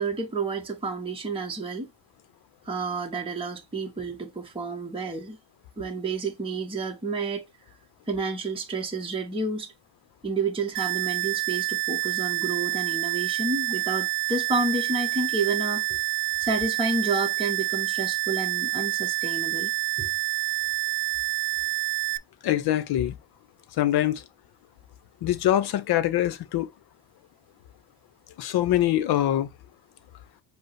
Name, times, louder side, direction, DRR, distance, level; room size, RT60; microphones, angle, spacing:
voice 1, 0.0-1.9 2.6-5.4 5.8-7.5 8.1-9.7 10.2-16.0 16.4-19.7 20.0-20.1, right 3 dB, 10° right, 0.8 m, -30 dB
sound 1, 10.8-22.2, right 23 dB, 90° right, 0.6 m, -28 dB
voice 2, 22.4-23.1 23.8-24.2 25.2-26.7 28.4-29.5, left 12 dB, 55° left, 0.7 m, -23 dB
5.2 x 2.1 x 4.6 m
cardioid pair, 135°, 46 cm